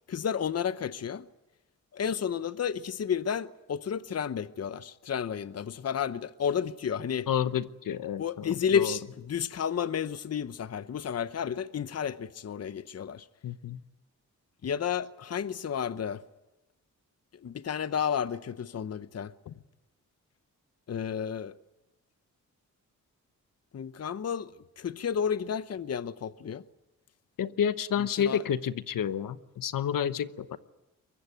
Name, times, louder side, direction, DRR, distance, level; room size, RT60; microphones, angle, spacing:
voice 1, 0.1-1.3 1.9-7.3 8.2-13.3 14.6-16.2 17.3-19.3 20.9-21.6 23.7-26.6 28.2-28.4, left 7 dB, 50° left, 0.8 m, -31 dB
voice 2, 7.3-9.0 13.4-13.8 19.5-19.6 27.4-30.6, left 8 dB, 80° left, 1.0 m, -30 dB
23.5 x 22.5 x 9.2 m
cardioid pair, 85°, 32 cm